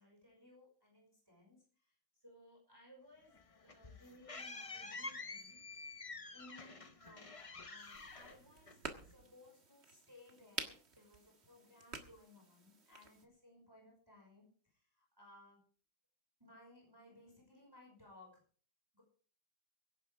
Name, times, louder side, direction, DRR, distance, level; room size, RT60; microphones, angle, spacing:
voice 1, 0.0-5.6 6.3-15.6 16.4-18.4 18.9-19.0, left 1 dB, 10° right, -2 dB, 5.5 m, -62 dB
sound 1, 3.3-9.1, left 3 dB, 45° left, 0.4 m, -49 dB
sound 2, 7.9-13.3, right 4 dB, 35° right, 1.7 m, -50 dB
24.0 x 10.5 x 3.5 m, 0.43 s
omnidirectional pair, 2.2 m